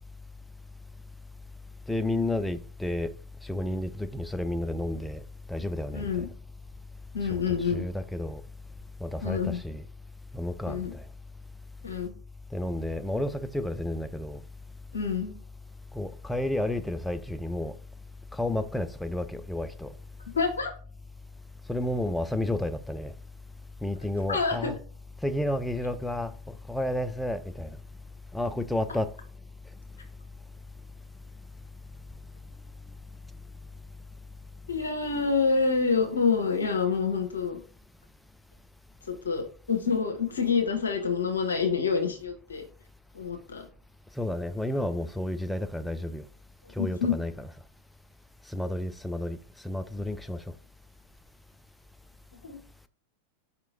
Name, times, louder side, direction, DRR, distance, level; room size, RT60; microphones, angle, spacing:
voice 1, 1.9-3.1 3.4-5.2 5.5-6.3 7.2-8.4 9.0-9.8 10.3-11.0 12.5-14.4 15.9-17.8 18.3-19.9 21.7-23.1 23.8-24.8 25.2-26.3 26.7-27.7 28.3-29.1 44.2-46.2 46.8-47.3 48.5-49.4 49.6-50.4, left 1 dB, 5° left, 0.3 m, -31 dB
voice 2, 5.9-6.3 7.1-7.8 9.2-9.6 10.7-10.9 11.8-12.1 14.9-15.3 20.3-20.7 24.3-24.7 34.7-37.6 39.1-42.6 43.1-43.6 46.8-47.2 52.4-52.6, left 5 dB, 70° left, 0.8 m, -27 dB
4.6 x 2.9 x 3.9 m
figure-of-eight pair, 90°, 0 cm